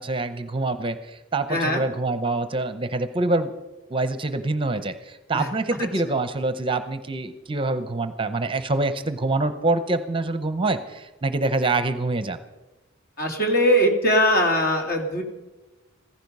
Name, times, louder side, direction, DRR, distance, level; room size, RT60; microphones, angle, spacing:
voice 1, 0.0-3.5 3.9-12.4, right 2 dB, 25° right, 11 dB, 0.7 m, -25 dB
voice 2, 1.5-1.8 5.3-5.5 13.2-15.2, equal, 45° left, 3 dB, 2.7 m, -21 dB
15.5 x 15.0 x 5.5 m, 1.1 s
head